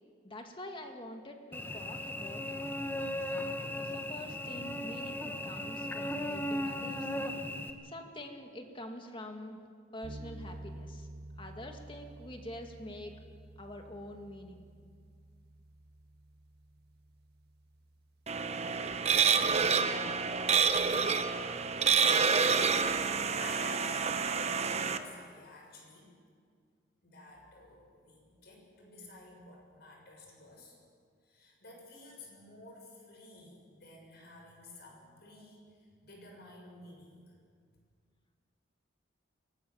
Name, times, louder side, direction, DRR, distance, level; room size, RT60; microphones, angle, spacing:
voice 1, 0.2-2.4 3.3-7.1 7.8-9.6 9.9-11.1 11.4-13.2 13.6-14.7, left 1 dB, 25° left, 4 dB, 2.1 m, -46 dB
Cricket / Buzz, 1.5-7.7, left 1 dB, 10° left, 1.3 m, -37 dB
sound 1, 10.0-18.2, right 1 dB, 55° right, 1.8 m, -50 dB
sound 2, 18.3-25.0, right 5 dB, 35° right, 1.0 m, -28 dB
voice 2, 19.2-19.5 19.8-20.2 22.9-26.1 27.0-30.8 31.2-37.3, left 2 dB, 55° left, 0 dB, 6.7 m, -52 dB
23.5 x 18.5 x 7.3 m, 2.1 s
head